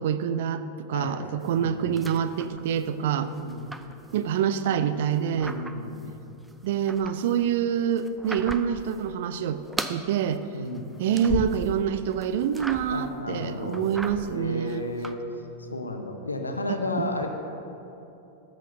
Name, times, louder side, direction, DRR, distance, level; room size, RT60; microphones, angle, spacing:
voice 1, 0.0-3.3 4.1-5.6 6.6-9.6 9.9-10.4 11.0-14.8 17.0-17.3, right 8 dB, 55° right, 12 dB, 0.5 m, -26 dB
sound 1, 1.4-3.0 3.2-4.6 5.0-6.1 6.4-9.0 9.2-10.1 10.4-11.8 12.1-13.1 13.5-15.1, right 2 dB, 5° right, 0.5 m, -38 dB
voice 2, 3.1-3.7 5.3-6.0 10.5-10.9 12.9-13.9 14.2-15.2 15.6-17.3, left 2 dB, 80° left, 4 dB, 1.0 m, -33 dB
13.5 x 6.3 x 5.4 m, 2.9 s
figure-of-eight pair, 90°, 0 cm